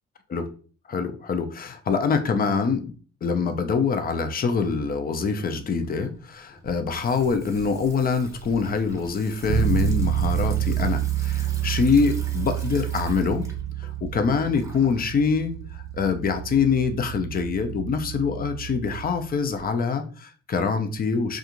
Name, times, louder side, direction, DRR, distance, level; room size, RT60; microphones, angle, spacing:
voice 1, 0.9-2.9 3.2-13.5 13.8-21.4, left 5 dB, 30° left, 8 dB, 0.4 m, -25 dB
Water tap faucet / Sink (filling or washing), 5.2-16.9, right 1 dB, 10° right, 0.7 m, -46 dB
sound 1, 6.6-19.6, right 8 dB, 80° left, 1.1 m, -45 dB
Bass guitar, 9.5-19.3, right 10 dB, 85° right, 0.5 m, -28 dB
2.4 x 2.4 x 2.9 m, 0.39 s
cardioid pair, 90°, 30 cm